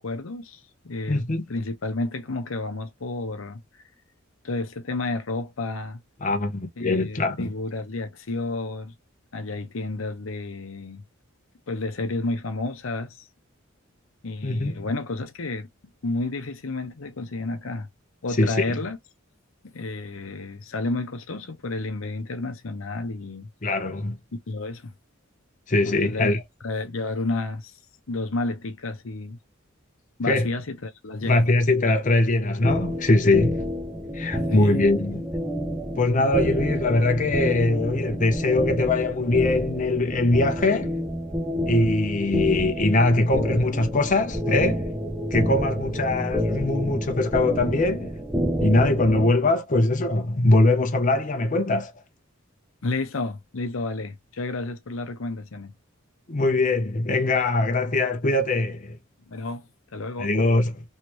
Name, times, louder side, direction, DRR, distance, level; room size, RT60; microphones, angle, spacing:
voice 1, 0.0-1.2 1.5-3.6 4.4-6.0 6.8-8.9 9.3-11.0 11.7-13.3 14.2-15.7 16.0-17.9 18.2-19.0 19.7-23.5 24.5-24.9 25.8-26.3 26.6-27.7 28.1-29.4 30.2-31.5 34.2-34.8 52.8-55.7 59.3-59.7 59.9-60.3, left 2 dB, 75° left, 0.8 m, -31 dB
voice 2, 1.1-1.4 6.2-7.5 14.4-14.8 18.4-18.7 23.6-24.2 25.7-26.4 30.3-30.5 31.2-33.6 34.1-35.2 36.0-40.9 41.7-44.9 45.3-48.2 48.6-51.9 56.3-59.0 60.2-60.8, left 2 dB, 40° left, 0.7 m, -22 dB
sound 1, 32.6-49.3, equal, 10° right, 0.6 m, -29 dB
3.2 x 3.0 x 3.0 m
head